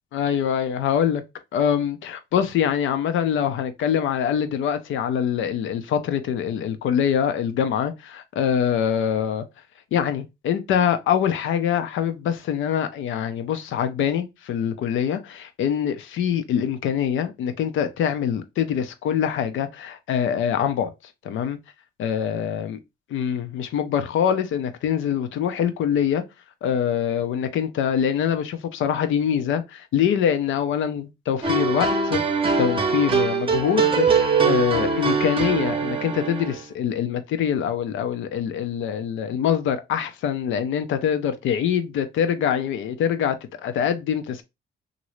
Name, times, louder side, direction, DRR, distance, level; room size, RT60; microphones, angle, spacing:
voice 1, 0.1-1.2 1.5-9.5 9.9-20.9 21.2-21.6 22.0-22.8 23.1-26.2 26.6-43.4 43.6-44.4, left 8 dB, 80° left, 0.6 m, -24 dB
sound 1, 31.4-36.6, right 5 dB, 25° right, 0.7 m, -22 dB
3.0 x 2.6 x 3.0 m
cardioid pair, 90°, 20 cm